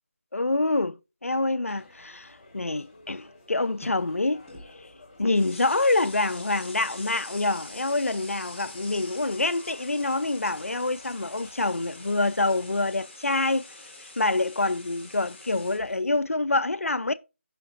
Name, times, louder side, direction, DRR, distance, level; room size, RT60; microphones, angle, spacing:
voice 1, 0.3-4.5 5.2-13.6 14.0-17.1, left 2 dB, 85° left, 0.7 m, -26 dB
sound 1, 1.6-12.9, left 2 dB, 25° left, 3.4 m, -52 dB
sound 2, 1.7-2.0 3.8-3.9 4.5-4.7 5.1-16.0, left 2 dB, 5° left, 1.7 m, -45 dB
15.0 x 6.0 x 2.6 m
figure-of-eight pair, 170°, 7 cm